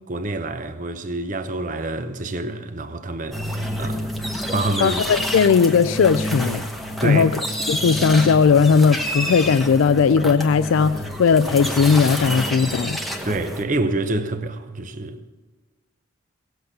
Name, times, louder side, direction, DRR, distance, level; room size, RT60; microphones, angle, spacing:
voice 1, 0.1-4.1 4.5-5.0 7.0-7.4 13.2-15.3, right 2 dB, 40° right, 0.8 m, -27 dB
sound 1, 3.3-13.6, equal, ahead, 1.0 m, -28 dB
voice 2, 4.8-6.6 7.0-7.4 7.7-13.0, left 5 dB, 80° left, 0.4 m, -17 dB
17.5 x 7.9 x 6.7 m
head